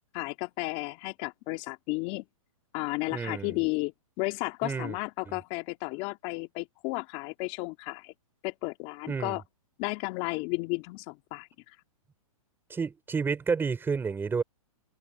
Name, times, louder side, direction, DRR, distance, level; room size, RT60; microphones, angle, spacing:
voice 1, 0.1-2.3 2.7-8.1 8.4-9.4 9.8-11.5, left 26 dB, 35° left, 2.6 m, -33 dB
voice 2, 3.1-3.6 4.6-5.0 5.3-5.4 9.1-9.4 12.7-14.4, right 5 dB, 10° right, 5.4 m, -30 dB
hypercardioid pair, 140°, 18 cm